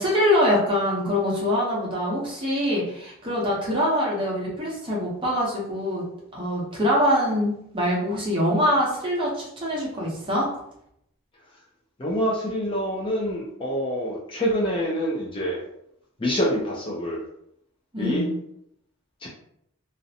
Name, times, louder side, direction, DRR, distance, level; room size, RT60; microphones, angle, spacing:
voice 1, 0.0-6.0 6.3-10.5 17.9-18.3, equal, 25° right, -5 dB, 0.7 m, -24 dB
voice 2, 12.0-15.6 16.2-17.2 18.0-18.3 19.2-19.3, equal, 25° left, -4 dB, 0.3 m, -26 dB
2.5 x 2.0 x 2.7 m, 0.73 s
head